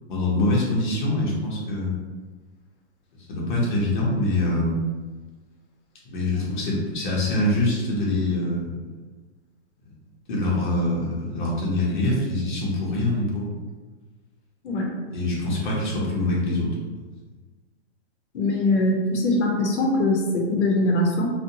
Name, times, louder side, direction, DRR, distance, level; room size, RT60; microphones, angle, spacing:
voice 1, 0.1-2.0 3.3-4.8 6.1-8.8 10.3-13.5 15.1-16.7 16.9-17.0, left 2 dB, 45° left, -4 dB, 0.8 m, -24 dB
voice 2, 18.3-21.3, left 2 dB, 90° left, 0 dB, 0.8 m, -22 dB
2.6 x 2.2 x 2.7 m, 1.3 s
hypercardioid pair, 180°, 33 cm